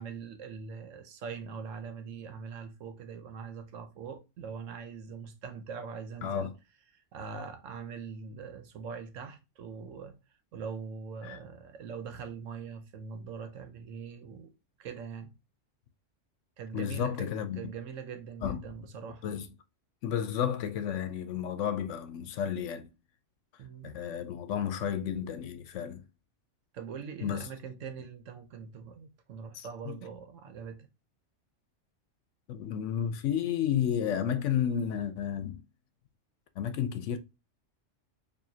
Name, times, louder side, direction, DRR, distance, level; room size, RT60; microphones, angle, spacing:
voice 1, 0.0-6.5 6.9-10.2 10.5-14.5 14.8-15.4 16.6-17.3 17.6-19.3 23.6-24.0 26.7-30.9, right 6 dB, 85° right, 1.2 m, -42 dB
voice 2, 6.2-6.5 11.2-11.4 16.7-17.6 18.4-18.7 19.2-19.5 20.0-22.9 23.8-26.0 27.2-27.5 29.5-30.0 32.5-35.6 36.6-37.2, left 9 dB, 75° left, 0.9 m, -32 dB
4.8 x 2.6 x 2.7 m
omnidirectional pair, 1.3 m